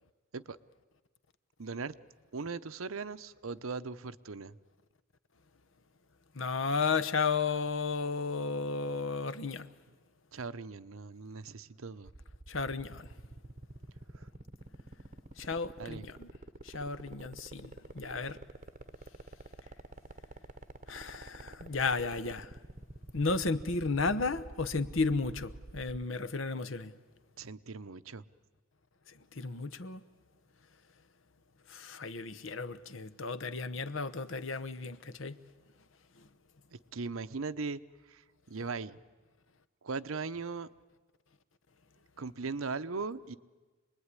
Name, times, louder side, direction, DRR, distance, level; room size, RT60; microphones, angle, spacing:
voice 1, 1.6-1.9 2.3-4.6 10.3-12.1 14.1-14.3 15.8-16.0 27.4-28.2 36.7-37.8 38.1-38.2 38.5-39.0 39.8-40.7 42.2-43.4, right 4 dB, 90° right, 0.8 m, -39 dB
voice 2, 6.3-9.7 12.5-13.1 15.4-16.3 16.6-18.4 20.9-22.6 23.1-26.9 29.1-30.0 31.7-35.4 36.2-36.3, left 4 dB, 70° left, 1.0 m, -33 dB
sound 1, 12.1-26.0, right 2 dB, 35° right, 0.8 m, -47 dB
27.0 x 20.5 x 9.8 m
head